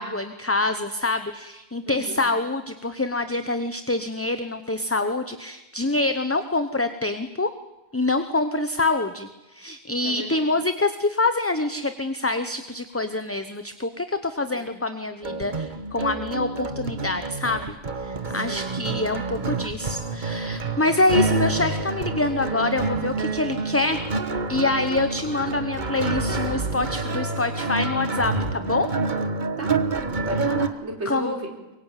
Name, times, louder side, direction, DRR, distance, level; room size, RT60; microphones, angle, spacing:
voice 1, 0.0-7.5 7.9-24.0 24.5-28.9 31.1-31.3, left 2 dB, 15° left, 9 dB, 0.9 m, -26 dB
voice 2, 1.9-2.2 10.0-10.5 14.5-14.7 18.4-18.7 29.6-31.5, right 1 dB, 80° right, 2 dB, 4.5 m, -34 dB
sound 1, 15.2-30.7, right 3 dB, 45° right, 1.4 m, -28 dB
23.0 x 23.0 x 9.2 m, 1.0 s
omnidirectional pair, 1.1 m